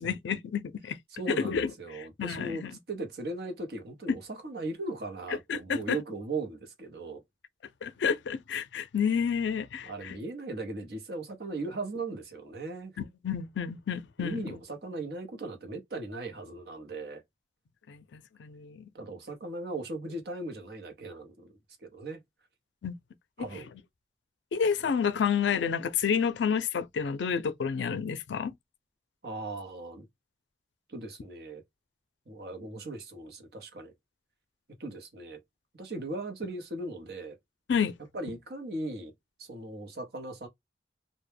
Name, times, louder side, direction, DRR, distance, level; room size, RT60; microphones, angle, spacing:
voice 1, 0.0-1.0 1.4-1.7 2.0-2.7 4.1-4.2 5.5-6.0 7.8-10.2 13.0-14.6 17.9-18.9 22.8-22.9 24.5-28.5 37.7-37.9, left 6 dB, 90° left, 0.4 m, -30 dB
voice 2, 1.1-2.6 2.9-7.2 9.8-12.9 14.2-17.2 18.9-21.5 21.8-22.2 23.4-23.7 29.2-30.1 30.9-31.6 32.3-33.9 34.8-35.4 35.8-37.4 38.1-39.1 39.4-40.5, right 2 dB, 65° right, 0.7 m, -38 dB
2.1 x 2.1 x 3.1 m
head